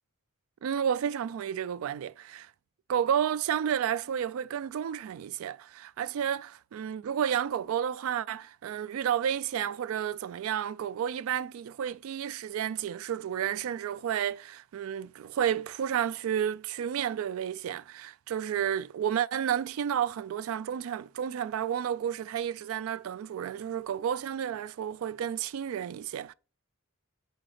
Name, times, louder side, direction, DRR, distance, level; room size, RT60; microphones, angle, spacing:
voice 1, 0.6-2.5 2.9-26.3, right 9 dB, 80° right, 0.3 m, -31 dB
7.6 x 4.0 x 3.3 m
head